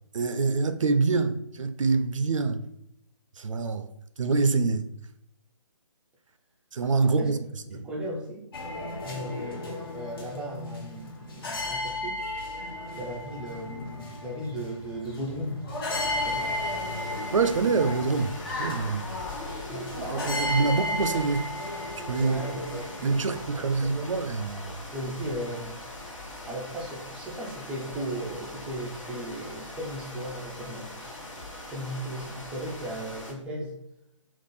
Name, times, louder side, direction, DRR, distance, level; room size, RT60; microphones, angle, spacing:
voice 1, 0.1-2.6 3.4-3.9 4.2-4.9 6.7-7.4 7.7-7.9 17.3-19.1 20.0-21.5 22.1-22.4 23.0-24.7 25.0-25.1, right 4 dB, 70° right, 0.5 m, -26 dB
voice 2, 7.7-8.5 9.0-12.2 12.9-16.5 19.7-19.9 20.6-20.7 22.2-23.2 23.5-24.1 24.9-25.8 26.5-31.3 31.7-33.7, equal, 5° right, 0.4 m, -36 dB
sound 1, 8.5-23.5, left 1 dB, 45° left, 0.9 m, -34 dB
sound 2, 15.9-33.3, left 1 dB, 70° left, 1.3 m, -42 dB
3.6 x 2.5 x 4.1 m
figure-of-eight pair, 145°, 17 cm